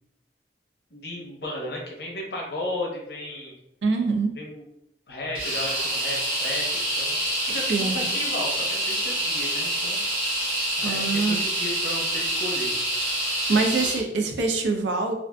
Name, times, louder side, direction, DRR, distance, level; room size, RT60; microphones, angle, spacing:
voice 1, 0.9-3.5 4.3-4.7 5.1-10.3 10.8-12.7 13.6-14.0, left 1 dB, 65° left, -2 dB, 0.7 m, -34 dB
voice 2, 3.8-4.3 7.7-8.1 10.8-11.4 13.5-15.1, right 3 dB, 85° right, 3 dB, 0.5 m, -24 dB
sound 1, 5.3-14.0, right 1 dB, 55° right, 1.1 m, -27 dB
2.5 x 2.4 x 2.2 m, 0.81 s
head